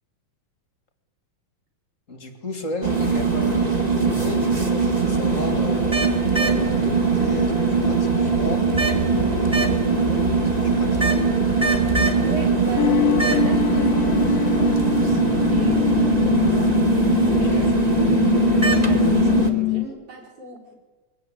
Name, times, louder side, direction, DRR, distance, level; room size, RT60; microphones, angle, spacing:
voice 1, 2.1-6.0 6.3-11.1 17.2-17.7, left 1 dB, 30° left, 7 dB, 1.7 m, -33 dB
sound 1, 2.8-19.5, right 4 dB, 30° right, 0.7 m, -21 dB
voice 2, 11.9-16.8 17.5-20.7, right 1 dB, 55° right, 0 dB, 6.0 m, -35 dB
sound 2, 12.8-19.9, left 15 dB, 70° left, 2.1 m, -23 dB
22.5 x 18.0 x 8.9 m, 1.3 s
omnidirectional pair, 4.2 m